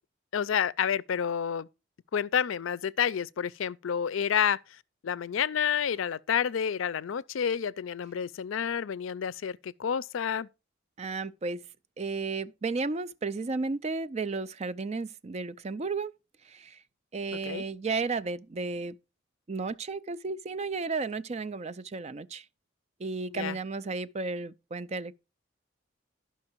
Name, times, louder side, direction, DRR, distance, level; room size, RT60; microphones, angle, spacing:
voice 1, 0.3-1.7 2.1-4.6 5.0-10.5 17.5-17.6 23.3-23.6, left 8 dB, 80° left, 0.4 m, -29 dB
voice 2, 11.0-11.7 12.0-16.1 16.4-16.8 17.1-19.0 19.5-22.5 23.0-25.1, right 3 dB, 35° right, 0.4 m, -33 dB
11.5 x 5.7 x 4.5 m
head